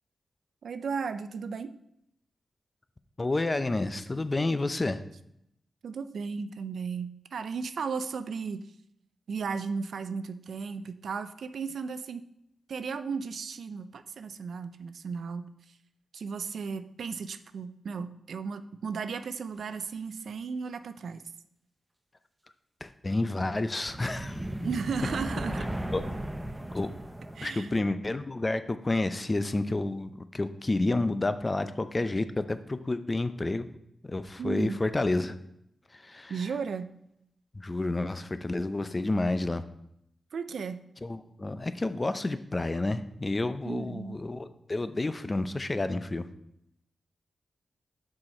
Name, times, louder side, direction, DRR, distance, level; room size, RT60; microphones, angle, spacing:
voice 1, 0.6-1.7 5.8-8.6 9.3-12.2 12.7-15.5 16.1-21.2 24.6-25.7 27.4-27.7 34.4-34.8 36.3-36.9 40.3-40.8 43.6-44.2, right 5 dB, 80° right, 11 dB, 0.4 m, -35 dB
voice 2, 3.2-5.0 22.8-24.4 25.9-26.0 26.7-26.9 27.4-33.7 34.0-35.4 35.9-36.4 37.5-39.6 41.0-46.3, left 2 dB, 30° left, 11 dB, 0.5 m, -30 dB
sound 1, 23.9-27.8, right 1 dB, 15° right, 0.7 m, -36 dB
6.1 x 4.9 x 4.2 m, 0.77 s
cardioid pair, 60°, 0 cm